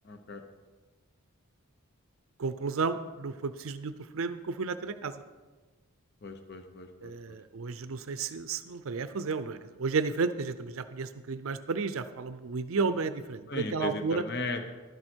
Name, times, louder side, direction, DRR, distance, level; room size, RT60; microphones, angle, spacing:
voice 1, 0.0-0.4 6.2-7.4 13.5-14.7, left 3 dB, 45° left, 7 dB, 0.7 m, -37 dB
voice 2, 2.4-5.2 7.0-14.2, right 4 dB, 65° right, 11 dB, 0.5 m, -32 dB
12.0 x 11.0 x 4.5 m, 1.3 s
head